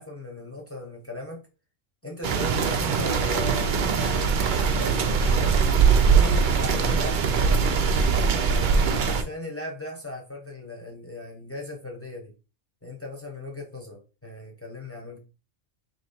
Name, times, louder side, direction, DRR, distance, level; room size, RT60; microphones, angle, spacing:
voice 1, 0.0-1.4 2.0-4.4 4.8-5.6 6.1-7.7 8.2-12.3 12.8-15.2, left 2 dB, 10° left, 0 dB, 0.8 m, -38 dB
sound 1, 2.2-9.2, right 5 dB, 60° right, 0.5 m, -22 dB
3.4 x 2.9 x 4.1 m, 0.31 s
omnidirectional pair, 1.3 m